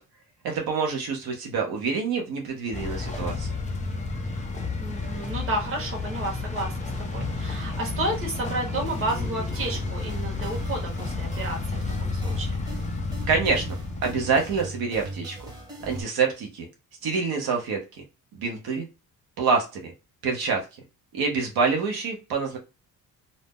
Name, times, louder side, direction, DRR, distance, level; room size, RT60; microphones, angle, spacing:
voice 1, 0.4-3.5 13.3-15.4 15.8-16.7 17.0-18.0 18.3-18.8 19.4-19.9 20.2-20.6 21.1-22.6, right 5 dB, 75° right, 0 dB, 0.8 m, -26 dB
sound 1, 2.7-14.6, left 3 dB, 20° left, 0.4 m, -31 dB
voice 2, 4.8-12.5, right 1 dB, 35° right, -1 dB, 1.1 m, -32 dB
sound 2, 8.9-16.0, right 2 dB, 10° right, 0.8 m, -40 dB
2.6 x 2.0 x 3.5 m, 0.29 s
cardioid pair, 155°, 38 cm